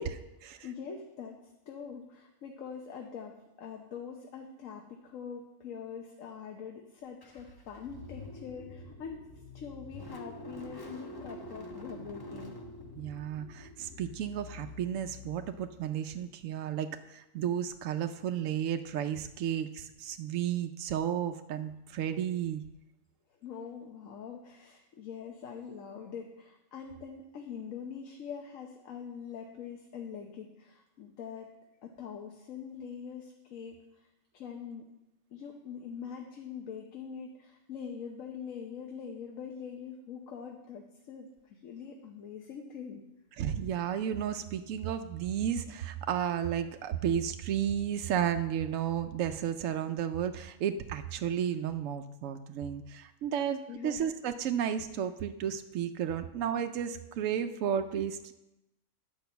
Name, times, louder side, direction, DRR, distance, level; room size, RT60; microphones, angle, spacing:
voice 1, 0.0-0.7 12.9-22.6 43.4-53.6 53.8-58.3, right 9 dB, 80° right, 7 dB, 0.9 m, -33 dB
voice 2, 0.6-9.2 9.5-12.5 23.4-31.5 31.8-34.1 34.3-34.9 35.3-43.0 53.4-54.0, left 7 dB, 90° left, 2 dB, 1.3 m, -43 dB
Car / Engine starting, 7.2-16.0, left 2 dB, 20° left, 1.0 m, -47 dB
10.5 x 5.3 x 6.8 m, 0.94 s
omnidirectional pair, 1.3 m